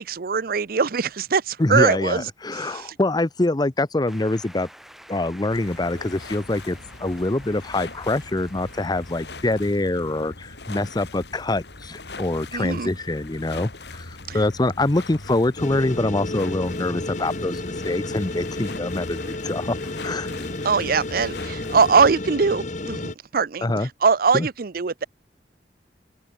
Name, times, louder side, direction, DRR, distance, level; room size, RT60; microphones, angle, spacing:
voice 1, 0.0-2.3 2.6-2.9 12.5-12.9 14.3-14.4 20.3-20.4 20.6-25.0, right 5 dB, 55° right, 0.6 m, -22 dB
voice 2, 1.6-4.7 5.1-19.8 20.0-20.3 23.6-23.9 24.3-24.5, left 2 dB, 25° left, 0.7 m, -25 dB
sound 1, 4.1-10.9, equal, ahead, 5.8 m, -49 dB
sound 2, 5.5-22.2, left 3 dB, 70° left, 3.1 m, -41 dB
sound 3, 15.6-23.2, left 2 dB, 45° left, 1.4 m, -32 dB
open air
head